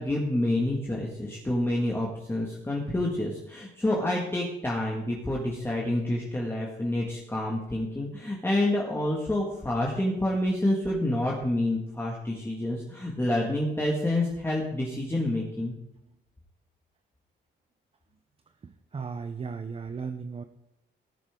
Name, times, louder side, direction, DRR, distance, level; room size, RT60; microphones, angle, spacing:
voice 1, 0.0-15.7, left 1 dB, 10° left, -3 dB, 2.0 m, -28 dB
voice 2, 18.6-20.4, right 5 dB, 30° right, 9 dB, 0.7 m, -36 dB
19.0 x 7.1 x 3.8 m, 0.87 s
cardioid pair, 90°, 20 cm